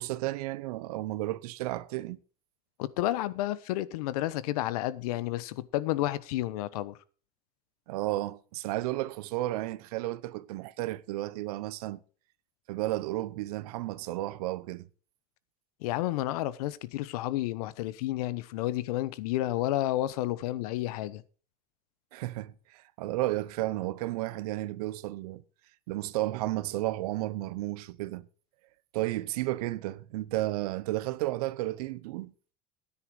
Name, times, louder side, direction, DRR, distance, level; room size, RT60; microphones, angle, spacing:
voice 1, 0.0-2.2 7.9-12.0 12.7-14.9 22.1-25.4 25.9-28.3 28.9-32.3, right 17 dB, 90° right, 0.9 m, -33 dB
voice 2, 2.8-7.0 15.8-21.2, left 15 dB, 90° left, 1.0 m, -31 dB
13.0 x 9.9 x 4.7 m
cardioid pair, 160°, 19 cm